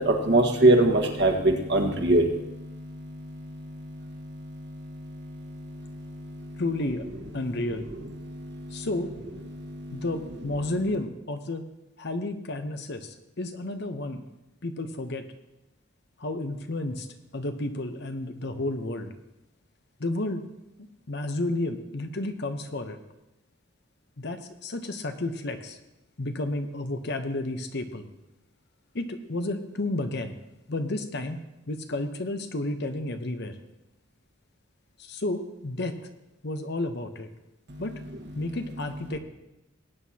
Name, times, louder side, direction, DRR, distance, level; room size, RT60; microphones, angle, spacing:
voice 1, 0.0-6.6 8.2-8.9 9.5-10.0 37.7-37.8, right 2 dB, 60° right, 2 dB, 1.5 m, -26 dB
voice 2, 6.6-7.1 7.3-7.9 8.7-9.1 9.9-11.6 12.0-14.2 14.6-15.3 16.2-17.1 17.3-19.1 20.0-20.5 21.1-23.0 24.2-25.8 26.2-28.1 28.9-30.3 30.7-31.4 31.7-33.6 35.0-36.0 36.4-37.3 37.8-38.0 38.3-39.2, left 2 dB, 55° left, 8 dB, 0.9 m, -31 dB
18.5 x 9.3 x 2.9 m, 0.94 s
head